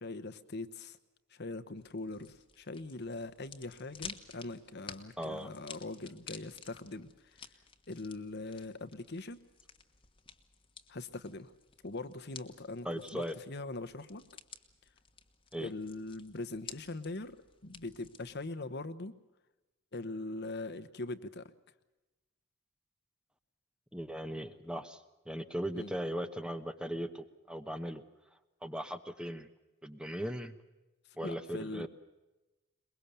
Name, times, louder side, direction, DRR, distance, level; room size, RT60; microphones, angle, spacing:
voice 1, 0.0-1.0 1.3-7.1 7.9-9.4 10.9-11.5 11.8-14.2 15.6-17.4 17.6-19.1 19.9-21.5 25.8-25.9 31.2-31.9, left 2 dB, 50° left, 11 dB, 1.1 m, -41 dB
sound 1, 1.8-18.5, left 6 dB, 25° left, 1.3 m, -53 dB
voice 2, 5.2-5.5 12.8-13.3 15.5-15.7 23.9-28.0 28.6-29.5 29.8-30.6 31.2-31.9, equal, 5° right, 9 dB, 1.0 m, -38 dB
23.0 x 21.5 x 6.9 m, 1.1 s
head